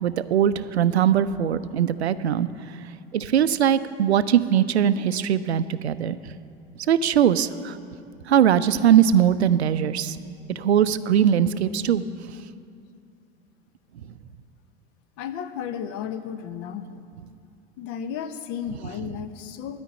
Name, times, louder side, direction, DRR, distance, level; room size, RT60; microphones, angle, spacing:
voice 1, 0.0-2.5 3.1-6.2 6.9-7.7 8.3-10.2 10.6-12.0, right 9 dB, 80° right, 14 dB, 0.5 m, -20 dB
voice 2, 15.2-17.0 17.8-19.8, left 8 dB, 45° left, 11 dB, 0.8 m, -33 dB
12.5 x 5.2 x 8.7 m, 2.4 s
figure-of-eight pair, 75°, 32 cm